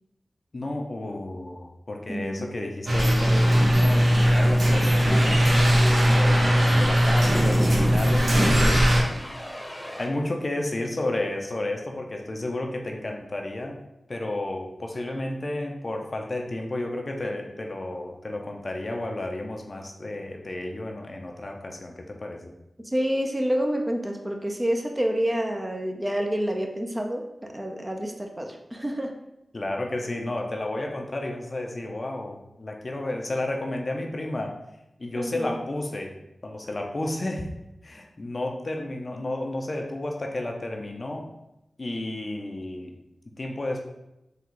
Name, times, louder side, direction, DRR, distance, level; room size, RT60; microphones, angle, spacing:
voice 1, 0.5-5.5 6.1-8.4 10.0-13.8 14.1-22.5 29.5-34.5 35.0-36.2 36.4-37.5 37.8-41.3 41.8-43.0 43.3-43.9, left 1 dB, 50° left, 2 dB, 0.6 m, -32 dB
voice 2, 2.1-2.5 22.9-27.2 27.5-29.1 35.2-35.6, equal, 20° right, 2 dB, 0.6 m, -28 dB
sound 1, 2.9-9.0, equal, 65° right, 1.1 m, -19 dB
sound 2, 4.4-10.1, equal, 15° left, 1.0 m, -39 dB
3.9 x 2.4 x 4.6 m, 0.90 s
cardioid pair, 50°, 0 cm